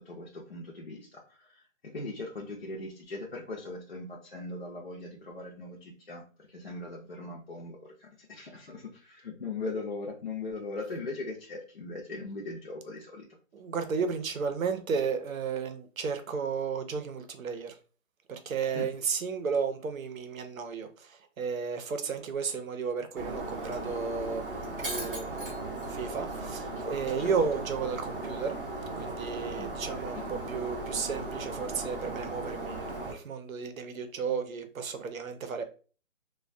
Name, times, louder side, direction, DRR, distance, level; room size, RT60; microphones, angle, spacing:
voice 1, 0.1-13.3 18.7-18.9 27.2-27.3 29.6-29.7 30.1-30.2, left 2 dB, 50° left, 0.5 m, -40 dB
voice 2, 13.5-17.8 18.3-25.4 25.9-28.6 29.0-35.6, right 5 dB, 80° right, 0.7 m, -33 dB
Shatter, 23.2-33.1, right 2 dB, 45° right, 0.6 m, -37 dB
2.2 x 2.2 x 2.5 m
hypercardioid pair, 180°, 40 cm